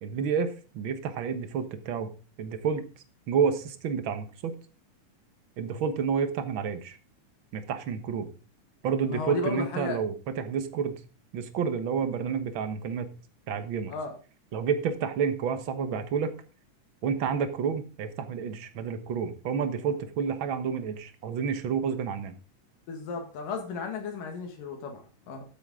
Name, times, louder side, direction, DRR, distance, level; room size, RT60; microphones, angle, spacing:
voice 1, 0.0-2.1 2.4-2.8 3.3-4.5 5.6-7.0 7.5-8.3 8.8-11.0 11.3-13.1 13.5-13.9 14.5-16.3 17.0-22.3, right 6 dB, 55° right, 10 dB, 1.4 m, -29 dB
voice 2, 9.1-10.0 13.9-14.2 22.9-25.5, left 4 dB, 80° left, 3 dB, 3.6 m, -34 dB
13.5 x 8.1 x 3.7 m, 0.35 s
omnidirectional pair, 3.8 m